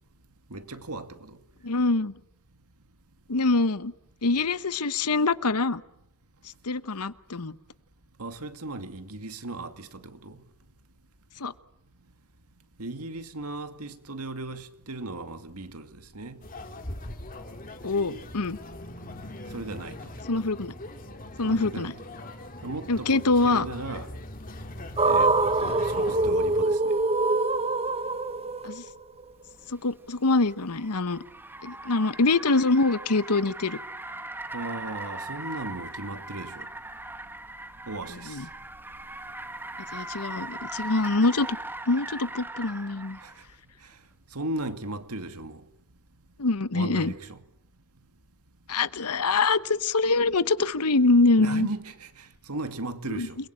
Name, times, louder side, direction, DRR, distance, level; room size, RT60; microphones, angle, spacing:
voice 1, 0.5-1.4 8.2-10.4 12.8-16.4 19.5-20.0 21.4-21.9 22.6-24.1 25.0-25.3 25.6-27.0 34.5-36.7 37.9-38.4 43.2-43.3 44.3-45.6 46.7-47.4 51.4-53.4, right 2 dB, 80° right, 2.4 m, -37 dB
voice 2, 1.6-2.1 3.3-3.9 4.2-5.8 6.6-7.5 11.4-11.5 17.8-18.6 20.3-20.7 21.4-21.9 22.9-23.7 28.6-28.8 29.7-31.2 31.6-33.8 38.3-38.5 39.9-41.5 41.9-43.2 46.4-47.1 48.7-51.7 53.1-53.3, left 3 dB, 90° left, 1.1 m, -24 dB
sound 1, 16.4-26.6, left 1 dB, 40° left, 3.0 m, -41 dB
sound 2, 25.0-29.2, right 2 dB, 30° right, 1.1 m, -24 dB
Car, 29.5-43.5, right 2 dB, 10° right, 1.3 m, -40 dB
29.5 x 22.0 x 8.8 m
head